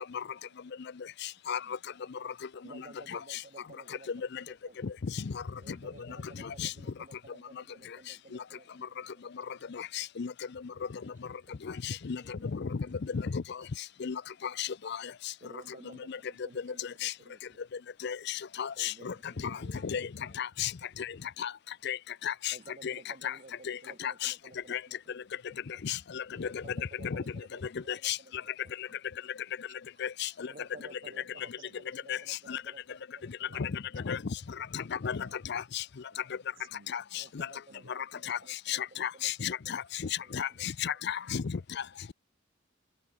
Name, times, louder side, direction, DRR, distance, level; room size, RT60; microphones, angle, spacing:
voice 1, 2.6-5.0 5.6-9.5 9.8-9.9 10.7-11.1 11.5-11.6 12.2-12.3 12.9-13.3 15.4-17.6 18.7-20.4 22.5-25.6 26.3-28.7 30.4-33.5 34.4-34.5 34.8-34.9 35.2-35.3 35.7-35.8 37.1-40.7, right 2 dB, 40° right, 1.6 m, -55 dB
voice 2, 18.6-19.1 19.8-20.0 20.4-20.7 21.4-21.5 21.9-22.0 22.2-22.5 22.8-22.9 23.2-23.3 23.7-23.8 24.0-24.3 24.7-24.8 25.8-26.5 27.1-27.2 28.0-28.2 30.0-30.3 32.1-32.2 32.5-32.6 33.6-33.7 34.1-34.2 34.7-35.2 35.5-35.8 36.9-37.0 38.3-38.4 38.7-39.8 40.3-41.4, left 8 dB, 55° left, 0.5 m, -32 dB
voice 3, 30.7-31.8 32.1-32.3 33.4-33.7 35.2-35.3 36.1-37.3 37.7-38.5, right 4 dB, 70° right, 2.4 m, -58 dB
head